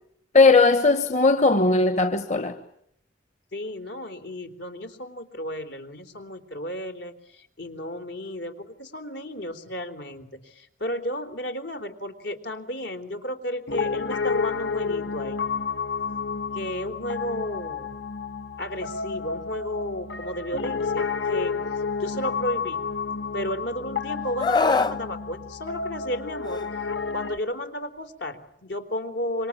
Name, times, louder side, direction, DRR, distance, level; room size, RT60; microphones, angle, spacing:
voice 1, 0.3-2.6, left 3 dB, 40° left, 1.4 m, -18 dB
voice 2, 3.5-15.5 16.5-18.0 18.6-21.6 22.0-22.8 23.3-26.6 27.1-29.5, left 1 dB, 70° left, 3.7 m, -33 dB
Piano, 13.7-27.4, left 5 dB, 85° left, 1.9 m, -30 dB
Screaming, 24.4-25.0 26.4-26.7, left 4 dB, 25° left, 1.0 m, -22 dB
27.0 x 25.0 x 8.7 m
head